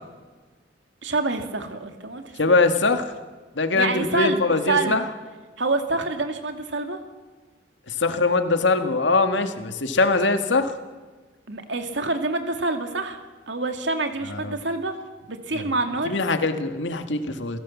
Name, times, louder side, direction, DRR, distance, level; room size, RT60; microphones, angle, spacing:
voice 1, 1.0-2.4 3.7-5.0 5.6-7.0 11.5-15.0 15.3-16.1, right 3 dB, 80° right, 6 dB, 2.4 m, -27 dB
voice 2, 2.4-3.1 3.6-5.0 7.9-10.7 14.3-14.6 15.5-15.6 16.0-17.6, left 3 dB, 85° left, 7 dB, 1.9 m, -22 dB
28.5 x 16.5 x 7.3 m, 1.3 s
head